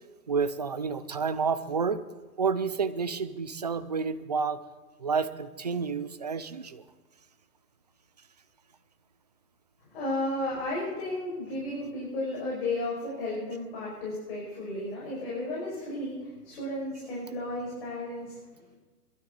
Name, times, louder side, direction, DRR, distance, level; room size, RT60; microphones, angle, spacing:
voice 1, 0.3-2.0 2.4-4.6 5.0-6.8, right 5 dB, 30° right, 12 dB, 0.4 m, -29 dB
voice 2, 9.9-18.8, left 1 dB, 40° left, -5 dB, 5.7 m, -33 dB
22.0 x 12.5 x 4.0 m, 1.3 s
hypercardioid pair, 155°, 47 cm